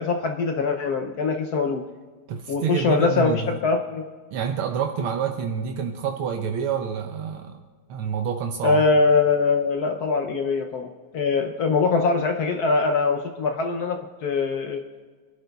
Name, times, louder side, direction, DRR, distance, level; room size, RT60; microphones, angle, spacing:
voice 1, 0.0-1.8 2.5-4.1 8.6-14.8, left 4 dB, 65° left, 5 dB, 1.0 m, -23 dB
voice 2, 2.3-3.6 4.3-7.6 7.9-8.9, right 7 dB, 80° right, 4 dB, 1.6 m, -28 dB
25.0 x 11.5 x 2.3 m, 1.5 s
omnidirectional pair, 2.4 m